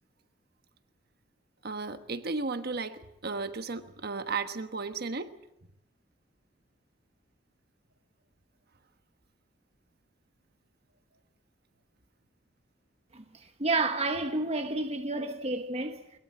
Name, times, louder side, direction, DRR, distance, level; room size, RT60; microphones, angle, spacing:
voice 1, 1.6-5.3, right 4 dB, 60° right, 1.3 m, -34 dB
voice 2, 13.1-16.0, right 2 dB, 35° right, 1.2 m, -30 dB
22.0 x 21.5 x 7.7 m
head